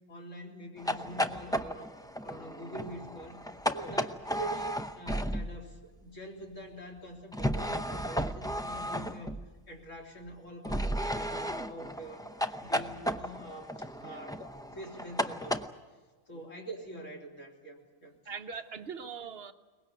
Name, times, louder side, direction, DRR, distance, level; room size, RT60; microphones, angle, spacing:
voice 1, 0.1-1.9 2.2-3.4 3.7-9.3 9.7-12.2 12.6-15.6 16.3-18.1, right 1 dB, 75° left, 0 dB, 3.9 m, -45 dB
sound 1, 0.8-5.8 7.3-9.6 10.6-15.7, equal, 5° left, 0.5 m, -34 dB
voice 2, 18.3-19.5, right 5 dB, 55° right, 9 dB, 1.0 m, -42 dB
23.0 x 20.0 x 8.2 m, 1.3 s
omnidirectional pair, 1.3 m